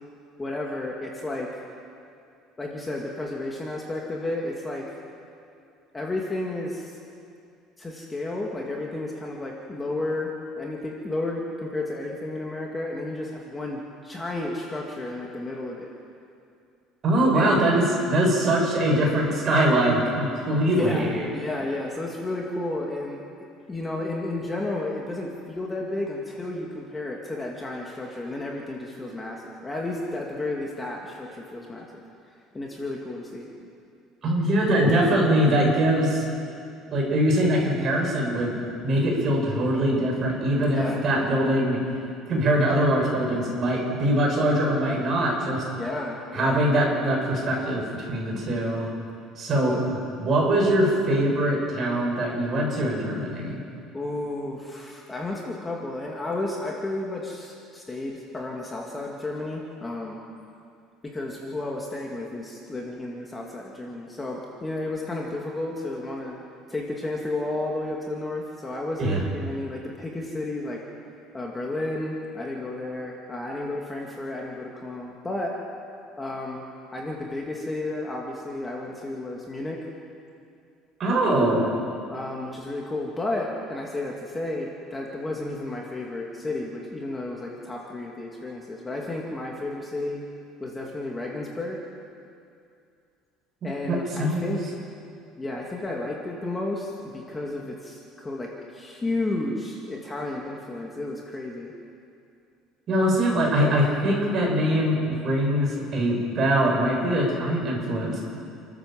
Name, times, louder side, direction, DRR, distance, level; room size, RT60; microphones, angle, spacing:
voice 1, 0.4-1.6 2.6-4.9 5.9-7.0 7.8-15.9 17.3-17.6 20.6-23.2 23.7-31.9 32.5-33.5 40.6-41.0 45.7-46.6 49.7-49.9 53.9-60.2 61.0-66.4 66.7-70.8 71.3-75.6 76.2-76.6 76.9-79.8 82.1-90.2 90.6-91.8 93.6-94.6 95.4-101.7, left 2 dB, 15° left, -2 dB, 2.1 m, -32 dB
voice 2, 17.0-21.3 34.2-36.2 36.9-38.5 38.8-41.8 42.3-45.6 46.3-48.9 49.4-53.6 69.0-69.2 81.0-81.6 93.8-94.4 102.9-108.2, right 1 dB, 35° right, -1 dB, 6.2 m, -22 dB
28.5 x 13.0 x 7.5 m, 2.4 s
cardioid pair, 155°, 0 cm